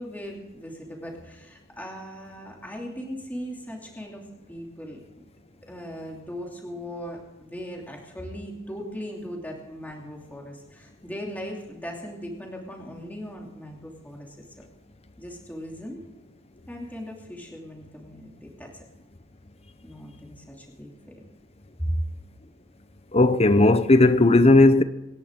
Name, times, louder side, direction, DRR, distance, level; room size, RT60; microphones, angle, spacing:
voice 1, 0.0-5.0 5.7-14.6 15.2-16.0 16.7-18.8 19.8-20.9 21.8-22.0, equal, 10° left, 2.7 m, -38 dB
voice 2, 23.1-24.8, left 2 dB, 30° left, 0.8 m, -16 dB
26.0 x 11.0 x 3.7 m
head